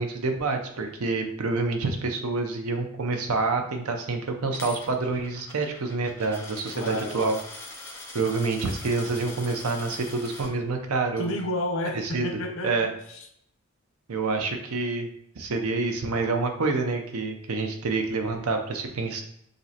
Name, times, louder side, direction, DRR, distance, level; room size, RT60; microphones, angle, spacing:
voice 1, 0.0-7.4 8.1-11.3 11.9-12.3 12.6-12.9 14.1-15.1 15.4-19.2, right 3 dB, 80° right, 4 dB, 0.6 m, -27 dB
Coin (dropping), 4.5-10.5, left 2 dB, 10° left, 0.4 m, -42 dB
voice 2, 6.7-7.3 11.2-13.3, left 1 dB, 65° left, 4 dB, 0.5 m, -31 dB
5.1 x 2.1 x 2.8 m, 0.71 s
head